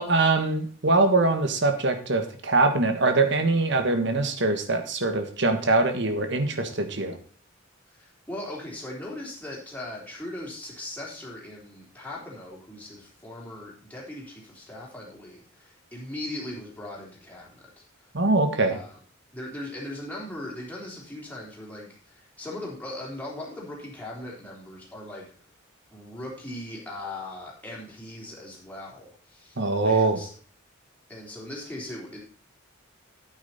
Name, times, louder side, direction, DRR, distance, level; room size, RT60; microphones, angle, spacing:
voice 1, 0.0-7.2 18.1-18.8 29.6-30.2, right 3 dB, 60° right, 7 dB, 1.5 m, -23 dB
voice 2, 7.9-17.7 18.7-19.0 19.3-25.3 25.9-30.3 31.1-32.2, left 1 dB, 10° left, -4 dB, 3.5 m, -39 dB
9.1 x 9.0 x 4.2 m, 0.43 s
head